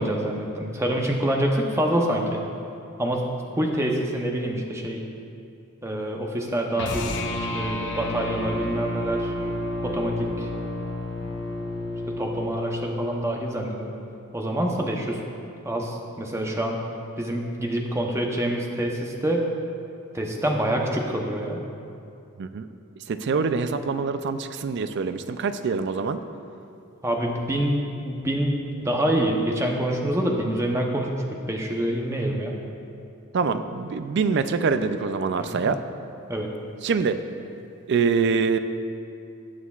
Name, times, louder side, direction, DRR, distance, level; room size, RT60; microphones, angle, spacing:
voice 1, 0.0-2.4 3.0-3.3 3.6-5.0 5.8-7.1 7.5-9.3 9.8-10.5 12.2-14.0 14.3-15.2 15.6-16.8 17.2-19.4 20.1-21.6 27.0-31.2 31.5-32.5 35.4-35.7 36.3-36.5, right 1 dB, 10° right, 0 dB, 0.7 m, -26 dB
sound 1, 6.7-13.1, left 1 dB, 55° left, 0.8 m, -30 dB
voice 2, 23.1-26.2 33.3-35.8 36.8-37.2 37.9-38.6, right 5 dB, 50° right, 10 dB, 0.4 m, -24 dB
18.5 x 6.3 x 2.4 m, 2.6 s
head